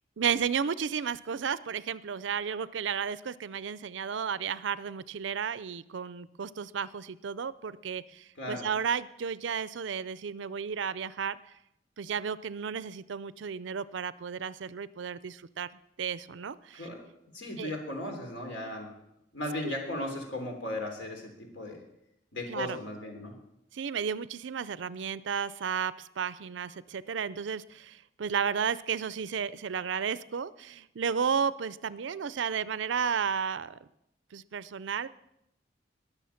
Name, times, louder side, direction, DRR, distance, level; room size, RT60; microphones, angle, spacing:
voice 1, 0.2-11.4 12.0-15.7 16.0-16.8 17.6-17.7 19.6-19.7 22.5-22.8 23.7-33.8 34.3-35.1, right 7 dB, 75° right, 17 dB, 0.5 m, -33 dB
voice 2, 8.4-8.7 16.7-17.0 17.3-18.9 19.3-21.8 22.3-23.3, left 1 dB, 80° left, 2 dB, 3.3 m, -36 dB
20.5 x 6.9 x 5.8 m, 0.83 s
head